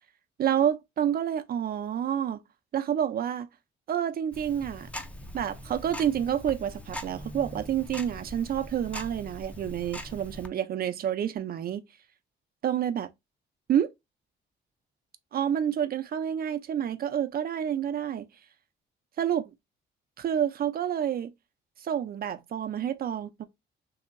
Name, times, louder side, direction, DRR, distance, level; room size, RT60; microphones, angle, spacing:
voice 1, 0.4-2.4 2.7-3.5 3.9-4.9 5.3-11.8 12.6-13.1 13.7-13.9 15.3-18.3 19.2-19.5 20.2-21.3 21.8-23.4, right 9 dB, 50° right, 0.4 m, -28 dB
Tick-tock, 4.3-10.5, equal, 5° left, 0.5 m, -41 dB
2.9 x 2.7 x 2.4 m
cardioid pair, 90°, 20 cm